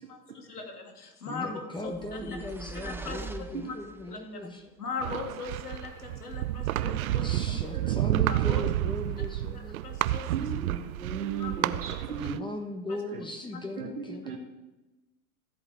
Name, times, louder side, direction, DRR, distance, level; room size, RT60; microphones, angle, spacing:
voice 1, 0.1-2.4 2.7-3.2 3.6-3.8 4.1-4.5 4.8-7.3 8.3-8.6 9.5-10.5 11.4-11.5 12.9-13.0 13.5-13.6, left 4 dB, 90° left, 3 dB, 2.2 m, -39 dB
voice 2, 1.3-4.7 7.2-9.8 12.2-14.4, left 1 dB, 10° left, 4 dB, 1.3 m, -38 dB
sound 1, 1.9-4.3, right 4 dB, 5° right, 0.7 m, -42 dB
sound 2, 5.0-12.4, right 14 dB, 70° right, 0.6 m, -30 dB
voice 3, 6.7-8.0 10.3-12.4 13.1-13.2 13.8-14.4, right 6 dB, 90° right, 2 dB, 2.1 m, -37 dB
14.0 x 7.9 x 4.7 m, 1.1 s
hypercardioid pair, 90°, 44 cm